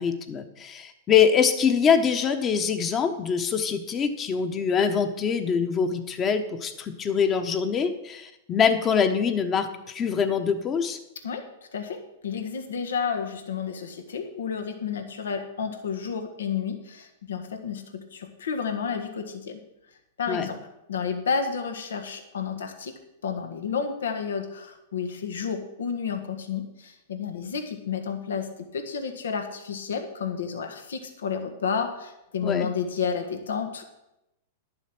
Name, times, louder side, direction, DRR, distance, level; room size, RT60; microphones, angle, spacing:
voice 1, 0.0-11.0 20.3-20.5 32.4-32.7, left 6 dB, 30° left, 7 dB, 1.2 m, -24 dB
voice 2, 11.7-19.6 20.2-20.6 20.9-33.8, left 6 dB, 80° left, 6 dB, 1.4 m, -31 dB
11.0 x 7.1 x 6.1 m, 0.90 s
hypercardioid pair, 115°, 0 cm